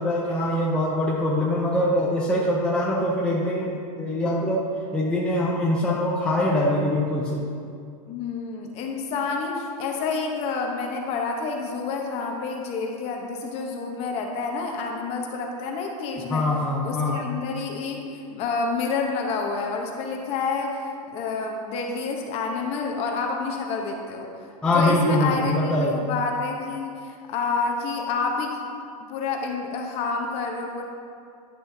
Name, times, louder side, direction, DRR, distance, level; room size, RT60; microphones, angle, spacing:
voice 1, 0.0-4.7 4.9-7.5 16.3-17.2 24.6-26.0, left 1 dB, 5° left, -5 dB, 0.6 m, -23 dB
voice 2, 8.1-16.4 16.8-20.8 21.1-24.3 24.7-28.6 29.1-30.8, left 4 dB, 30° left, 1 dB, 1.0 m, -28 dB
10.5 x 6.2 x 2.8 m, 2.4 s
supercardioid pair, 150°, 20 cm